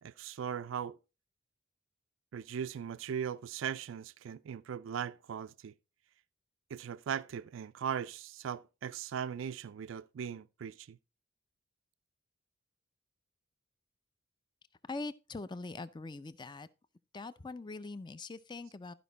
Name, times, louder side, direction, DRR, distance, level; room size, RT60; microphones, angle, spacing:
voice 1, 0.0-1.0 2.3-5.7 6.7-11.0, right 8 dB, 70° right, 0.4 m, -39 dB
voice 2, 14.9-16.7 17.1-18.9, left 3 dB, 20° left, 0.4 m, -42 dB
13.0 x 5.1 x 4.0 m
head